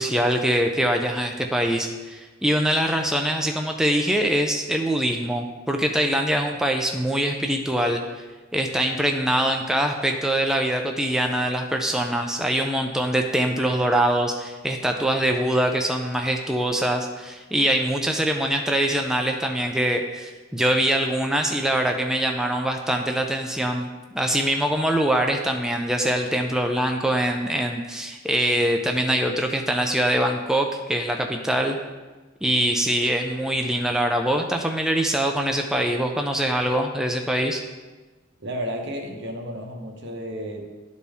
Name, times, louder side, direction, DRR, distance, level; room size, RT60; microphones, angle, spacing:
voice 1, 0.0-8.2 8.5-31.8 32.4-37.6, right 1 dB, 5° right, 2 dB, 0.4 m, -23 dB
voice 2, 38.4-40.6, equal, 65° right, 2 dB, 1.1 m, -32 dB
11.0 x 4.2 x 3.5 m, 1.3 s
head